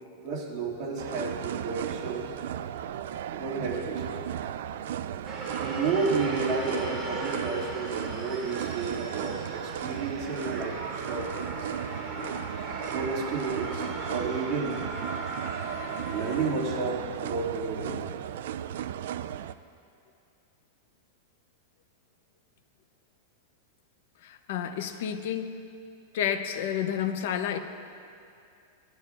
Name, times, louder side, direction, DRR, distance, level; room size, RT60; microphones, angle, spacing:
voice 1, 0.2-2.3 3.3-4.2 5.6-11.7 12.9-14.8 16.1-18.0, right 4 dB, 40° right, -4 dB, 2.4 m, -32 dB
sound 1, 1.0-19.5, right 10 dB, 70° right, 0.4 m, -35 dB
sound 2, 5.2-16.5, right 2 dB, 15° right, 2.6 m, -38 dB
voice 2, 24.2-25.5 26.1-27.6, left 9 dB, 65° left, 7 dB, 0.9 m, -30 dB
19.5 x 11.0 x 2.5 m, 2.5 s
supercardioid pair, 150°, 0 cm